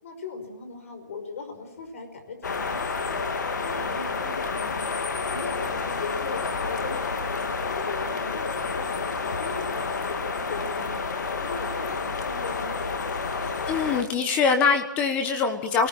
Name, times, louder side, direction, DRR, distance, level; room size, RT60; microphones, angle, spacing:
voice 1, 0.0-3.2 3.6-4.7 5.3-10.2 10.5-13.0, left 4 dB, 45° left, 7 dB, 5.5 m, -39 dB
sound 1, 2.4-14.0, left 4 dB, 60° left, 2.9 m, -29 dB
voice 2, 13.7-15.9, left 5 dB, 10° left, 7 dB, 1.2 m, -23 dB
26.0 x 19.0 x 9.0 m, 0.87 s
hypercardioid pair, 170°, 11 cm